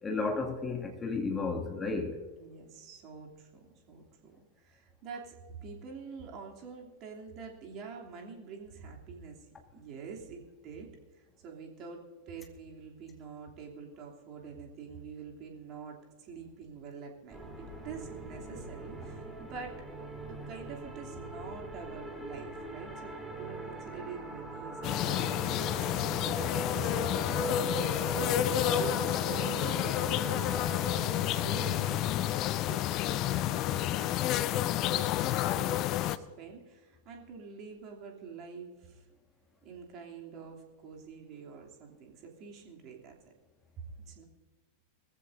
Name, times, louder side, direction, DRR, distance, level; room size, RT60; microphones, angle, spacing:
voice 1, 0.0-2.2, left 3 dB, 15° left, 2 dB, 2.3 m, -33 dB
voice 2, 2.4-9.4 9.7-19.8 20.3-26.2 26.7-30.0 30.5-32.0 32.6-39.0 39.6-43.3 44.0-44.2, right 5 dB, 35° right, 1 dB, 2.9 m, -47 dB
sound 1, 17.3-32.3, right 4 dB, 10° right, 2.2 m, -40 dB
sound 2, 24.8-36.2, left 14 dB, 35° left, 0.6 m, -30 dB
sound 3, 25.1-25.3 27.8-30.3, right 5 dB, 65° right, 1.6 m, -49 dB
21.0 x 15.0 x 2.6 m, 1.4 s
figure-of-eight pair, 90°, 0 cm